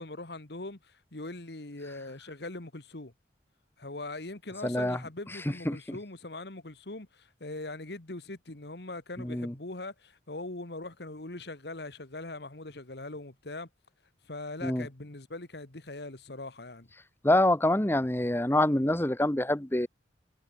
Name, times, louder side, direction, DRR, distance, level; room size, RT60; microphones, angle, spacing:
voice 1, 0.0-3.1 3.8-13.7 14.3-16.9, left 2 dB, 65° left, 1.7 m, -41 dB
voice 2, 4.6-5.0 5.7-6.0 9.2-9.5 14.6-14.9 17.2-19.9, left 1 dB, 15° left, 0.9 m, -26 dB
head